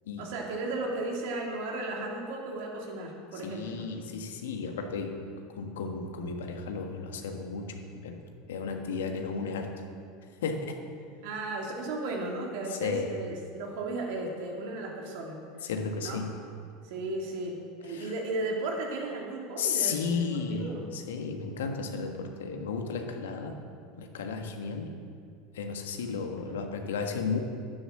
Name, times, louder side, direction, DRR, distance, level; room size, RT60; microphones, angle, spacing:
voice 1, 0.2-3.9 11.2-15.4 16.0-16.2 16.8-17.6 17.8-20.9 26.0-26.7, right 2 dB, 65° right, -1 dB, 3.0 m, -35 dB
voice 2, 3.3-5.2 5.5-8.2 8.5-9.8 10.4-10.8 12.7-13.2 15.6-16.3 17.8-18.1 19.6-23.6 24.0-24.9 25.5-27.4, left 5 dB, 75° left, 4 dB, 1.5 m, -34 dB
11.5 x 9.7 x 7.3 m, 2.3 s
hypercardioid pair, 80°, 0 cm